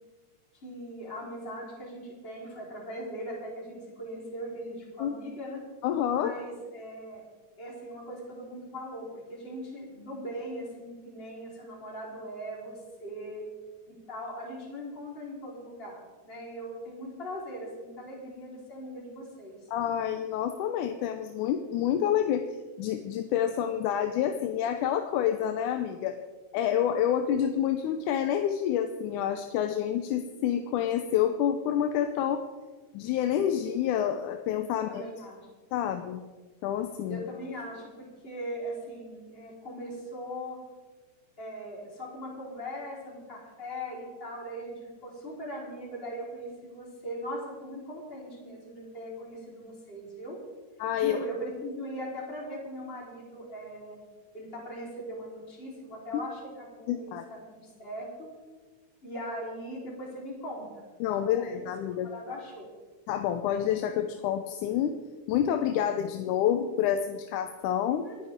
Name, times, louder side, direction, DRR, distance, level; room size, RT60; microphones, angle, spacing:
voice 1, 0.6-5.6 6.1-7.3 7.6-13.4 14.1-19.6 34.7-35.4 37.1-40.6 41.4-50.4 51.0-54.0 54.3-57.1 57.5-58.3 59.0-61.5 62.1-62.7 68.0-68.3, equal, 20° left, -5 dB, 4.2 m, -40 dB
voice 2, 5.8-6.3 19.7-22.5 22.8-26.2 26.5-32.4 32.9-35.0 35.7-36.2 36.6-37.3 50.8-51.2 56.1-56.2 56.9-57.2 61.0-62.1 63.1-64.9 65.3-68.1, left 10 dB, 90° left, 7 dB, 2.3 m, -28 dB
29.5 x 9.9 x 3.7 m, 1.4 s
omnidirectional pair, 3.5 m